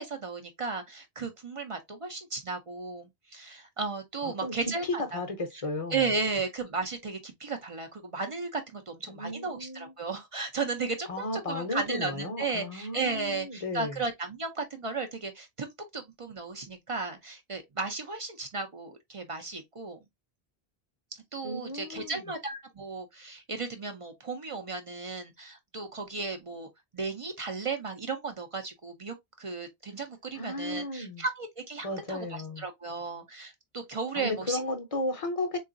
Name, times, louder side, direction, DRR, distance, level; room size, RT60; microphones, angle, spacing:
voice 1, 0.0-5.2 5.9-20.0 21.3-26.7 26.9-34.6, right 4 dB, 45° right, 0.5 m, -35 dB
voice 2, 4.8-6.0 9.1-9.9 11.1-14.0 21.4-22.2 30.3-31.2 31.8-32.7 34.2-35.6, left 2 dB, 40° left, 0.7 m, -34 dB
3.7 x 2.3 x 2.5 m
omnidirectional pair, 1.0 m